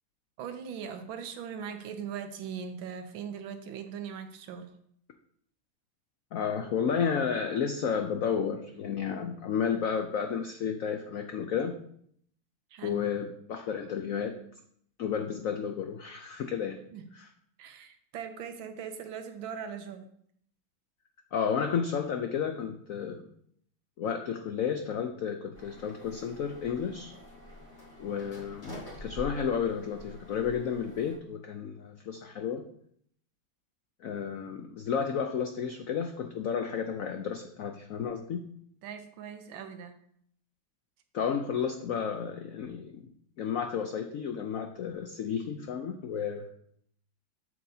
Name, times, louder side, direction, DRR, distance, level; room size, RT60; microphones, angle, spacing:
voice 1, 0.4-4.7 12.7-13.0 16.9-17.0 17.6-20.1 38.8-40.0, right 7 dB, 80° right, 8 dB, 1.5 m, -40 dB
voice 2, 6.3-11.7 12.8-14.3 15.0-16.8 17.1-17.3 21.3-23.3 24.0-27.1 28.0-32.6 34.0-38.4 41.1-43.0 43.4-46.4, left 7 dB, 85° left, 5 dB, 0.7 m, -32 dB
sound 1, 25.5-31.2, left 1 dB, 30° left, 2.2 m, -46 dB
7.7 x 7.6 x 2.7 m, 0.67 s
omnidirectional pair, 2.2 m